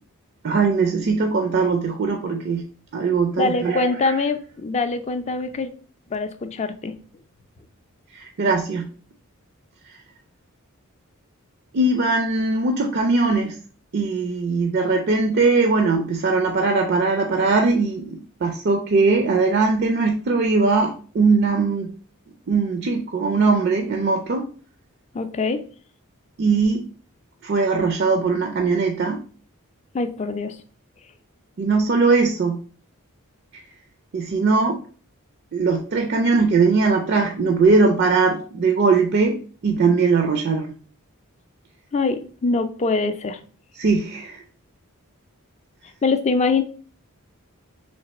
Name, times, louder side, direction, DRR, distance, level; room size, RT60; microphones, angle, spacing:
voice 1, 0.4-2.6 2.9-4.1 8.1-8.9 11.7-13.5 13.9-21.9 22.5-24.5 26.4-26.8 27.4-29.2 31.6-32.6 34.1-34.8 35.5-39.4 39.6-40.7 43.8-44.4, right 4 dB, 50° right, 4 dB, 0.4 m, -20 dB
voice 2, 3.4-5.7 6.1-6.9 25.1-25.6 29.9-30.6 41.9-43.4 46.0-46.6, left 3 dB, 30° left, 10 dB, 0.3 m, -23 dB
3.3 x 3.0 x 4.0 m, 0.42 s
head